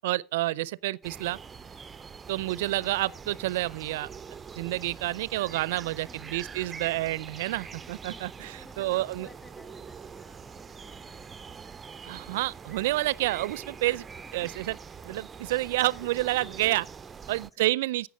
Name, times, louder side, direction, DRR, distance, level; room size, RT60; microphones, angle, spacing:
voice 1, 0.0-1.4 2.3-4.1 4.6-9.3 12.1-14.0 14.3-14.7 15.0-16.8 17.3-18.1, right 17 dB, 75° right, 0.5 m, -29 dB
sound 1, 1.0-17.5, right 6 dB, 25° right, 0.5 m, -44 dB
voice 2, 5.8-6.5 7.3-7.6 7.8-11.8 14.2-14.7 16.3-17.7, left 2 dB, 15° left, 4.8 m, -56 dB
15.5 x 6.0 x 6.5 m
hypercardioid pair, 90°, 0 cm